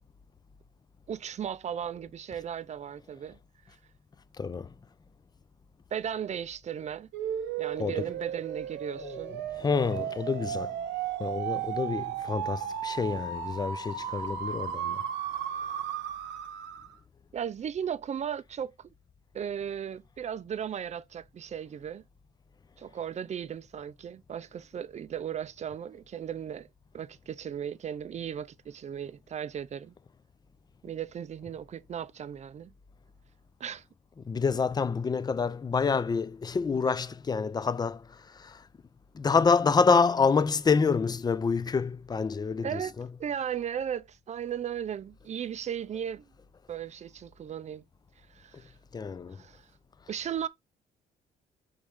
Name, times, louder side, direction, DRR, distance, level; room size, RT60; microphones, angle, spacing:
voice 1, 1.1-3.4 5.9-7.1 7.6-9.4 17.3-18.7 19.3-22.0 22.8-26.7 26.9-29.9 30.8-32.7 33.6-33.8 42.6-42.9 43.2-46.3 46.7-47.8 48.3-48.7 49.3-49.6 50.1-50.5, right 8 dB, 40° right, 0.5 m, -36 dB
voice 2, 4.4-4.7 7.8-8.1 9.0-9.3 9.6-10.7 11.2-15.0 34.2-38.0 38.3-38.6 39.1-43.1 48.9-49.4, left 5 dB, 20° left, 0.4 m, -27 dB
sound 1, 7.1-17.0, right 9 dB, 80° right, 0.8 m, -35 dB
4.8 x 3.1 x 3.5 m
supercardioid pair, 70°, 18 cm